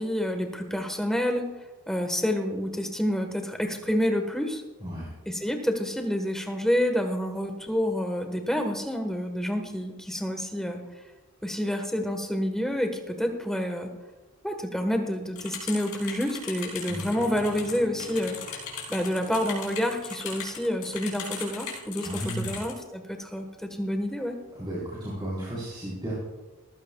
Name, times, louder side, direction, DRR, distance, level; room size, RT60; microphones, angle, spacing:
voice 1, 0.0-1.5 1.9-4.6 5.2-10.8 11.4-13.9 14.4-18.6 18.9-24.4, equal, ahead, 4 dB, 1.3 m, -28 dB
voice 2, 4.8-5.1 22.0-22.5 24.5-26.2, right 1 dB, 20° right, -8 dB, 4.0 m, -33 dB
sound 1, 15.4-22.7, left 6 dB, 80° left, 4.4 m, -38 dB
Guitar, 16.9-21.9, left 2 dB, 40° left, 2.1 m, -45 dB
19.0 x 14.5 x 2.3 m, 1.1 s
head